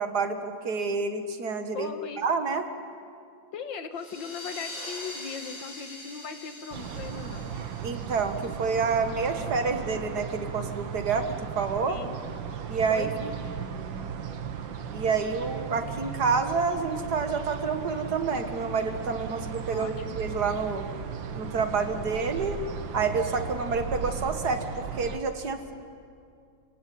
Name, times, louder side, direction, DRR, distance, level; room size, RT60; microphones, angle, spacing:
voice 1, 0.0-1.9 2.2-2.6 7.8-11.3 11.6-12.0 12.7-13.3 14.9-20.9 21.4-22.6 22.9-25.7, right 5 dB, 60° right, 7 dB, 2.1 m, -28 dB
voice 2, 1.7-2.2 3.5-7.5 11.9-12.2 12.9-13.1 19.7-20.2, left 6 dB, 85° left, 8 dB, 2.0 m, -38 dB
sound 1, 3.9-9.3, left 1 dB, 40° left, 7.0 m, -43 dB
sound 2, 6.7-25.2, right 7 dB, 90° right, 1.9 m, -36 dB
28.5 x 17.0 x 9.4 m, 2.4 s
omnidirectional pair, 2.0 m